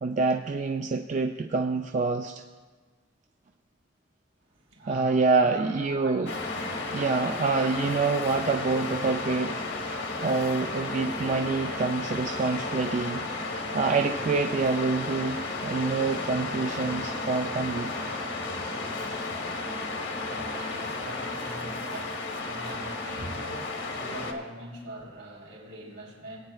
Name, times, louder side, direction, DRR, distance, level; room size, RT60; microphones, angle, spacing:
voice 1, 0.0-2.4 4.9-6.3 6.9-9.6 10.2-13.2 13.5-17.9, right 4 dB, 40° right, 4 dB, 0.3 m, -27 dB
voice 2, 4.5-6.3 7.5-7.7 20.4-26.4, right 1 dB, 75° right, -3 dB, 3.5 m, -42 dB
Waves surf, 6.3-24.3, left 3 dB, 60° left, 1.1 m, -33 dB
20.5 x 8.9 x 2.4 m, 1.4 s
head